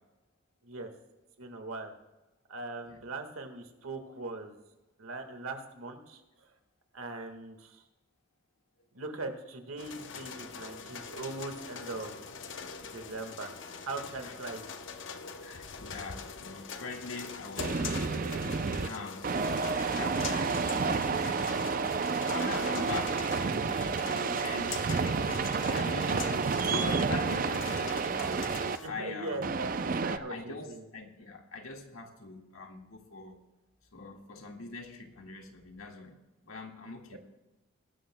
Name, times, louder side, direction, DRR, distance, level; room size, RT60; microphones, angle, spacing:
voice 1, 1.4-1.9 2.5-4.6 5.0-6.2 6.9-7.8 8.9-12.2 12.8-13.5 13.8-14.6 28.8-30.8 37.1-37.2, right 2 dB, 85° right, 5 dB, 1.6 m, -40 dB
sound 1, 9.8-28.9, left 5 dB, 60° left, 0.8 m, -43 dB
voice 2, 15.4-18.1 18.4-22.0 22.3-28.4 28.9-29.5 30.1-33.4 33.9-37.2, left 3 dB, 80° left, 2 dB, 1.8 m, -43 dB
sound 2, 17.6-18.9 19.2-28.8 29.4-30.2, right 5 dB, 40° right, 0.4 m, -30 dB
21.0 x 12.0 x 2.2 m, 1.1 s
head